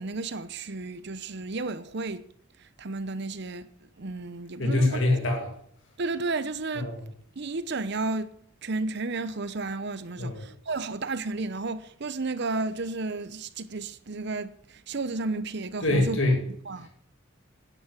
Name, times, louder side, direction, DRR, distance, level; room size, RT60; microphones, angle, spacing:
voice 1, 0.0-2.3 2.6-3.7 4.0-5.0 6.0-7.0 7.4-8.4 8.6-16.2 16.5-16.9, right 3 dB, 55° right, 0.8 m, -32 dB
voice 2, 4.6-5.5 6.8-7.0 10.2-10.4 15.8-16.4, left 2 dB, 65° left, 2.5 m, -24 dB
10.5 x 10.0 x 9.7 m
head